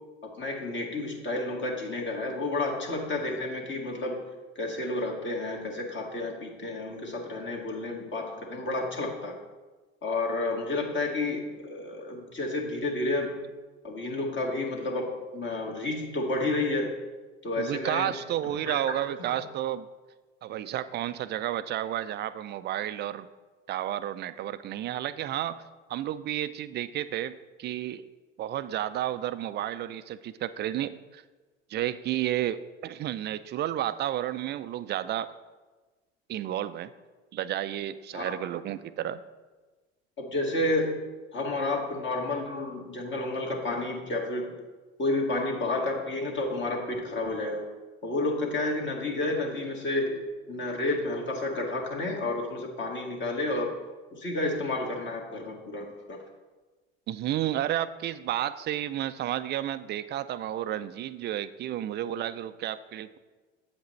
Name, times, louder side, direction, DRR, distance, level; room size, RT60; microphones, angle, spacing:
voice 1, 0.2-4.2 4.6-9.4 10.0-13.4 13.8-16.9 17.4-18.1 18.7-18.8 19.3-19.4 38.1-38.4 40.2-41.0 41.3-44.5 45.0-47.6 48.0-50.1 50.5-53.7 54.1-56.2, left 2 dB, 35° left, 0 dB, 1.8 m, -30 dB
voice 2, 17.6-19.9 20.4-23.3 23.7-25.6 25.9-28.0 28.4-31.2 31.7-35.3 36.3-36.9 37.3-39.2 57.1-63.2, right 12 dB, 30° right, 13 dB, 0.4 m, -31 dB
sound 1, 49.1-52.7, equal, 10° right, 1.1 m, -53 dB
8.1 x 7.9 x 3.1 m, 1.3 s
hypercardioid pair, 75°, 34 cm